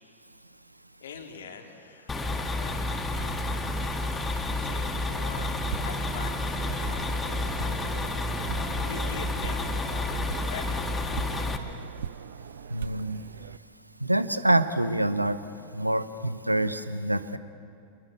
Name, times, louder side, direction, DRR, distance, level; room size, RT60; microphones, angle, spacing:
voice 1, 1.0-3.6 4.3-5.5 5.8-7.8 8.8-11.2, left 6 dB, 65° left, 3 dB, 2.7 m, -45 dB
sound 1, 2.1-11.6, left 2 dB, 15° left, 1.9 m, -30 dB
sound 2, 4.8-13.6, right 8 dB, 60° right, 0.6 m, -41 dB
voice 2, 12.7-13.2 14.0-15.4 15.7-17.4, right 1 dB, 85° right, 13 dB, 0.9 m, -26 dB
28.0 x 21.0 x 6.9 m, 2.6 s
figure-of-eight pair, 90°, 0 cm